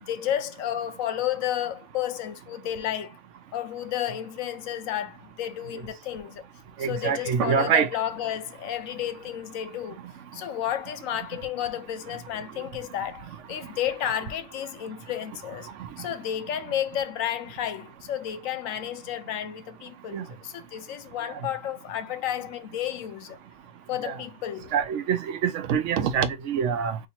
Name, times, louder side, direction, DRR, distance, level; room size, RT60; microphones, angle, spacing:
voice 1, 0.0-3.2 3.5-6.4 6.9-10.0 10.3-15.7 16.0-23.4 23.9-24.7, left 11 dB, 75° left, 0.9 m, -32 dB
voice 2, 6.8-7.9 20.1-20.2 24.0-24.2 24.7-27.0, right 7 dB, 70° right, 0.9 m, -25 dB
2.8 x 2.7 x 4.2 m
omnidirectional pair, 1.4 m